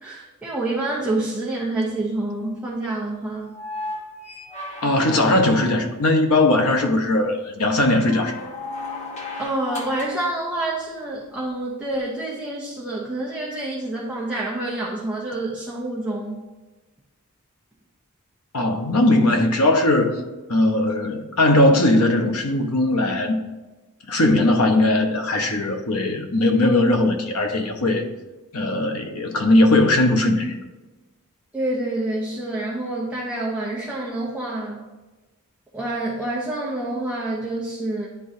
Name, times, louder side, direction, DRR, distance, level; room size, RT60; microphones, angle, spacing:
voice 1, 0.0-3.6 9.4-16.4 24.4-24.5 31.5-34.9 35.7-38.1, right 2 dB, 5° right, -6 dB, 0.8 m, -27 dB
sound 1, 3.4-6.0 7.8-10.3 11.9-12.0, left 2 dB, 30° left, 1.1 m, -34 dB
voice 2, 4.8-8.3 18.5-20.2 20.5-23.4 24.1-28.1 28.5-30.6, left 1 dB, 80° left, 4 dB, 1.0 m, -19 dB
10.0 x 3.8 x 2.7 m, 1.2 s
head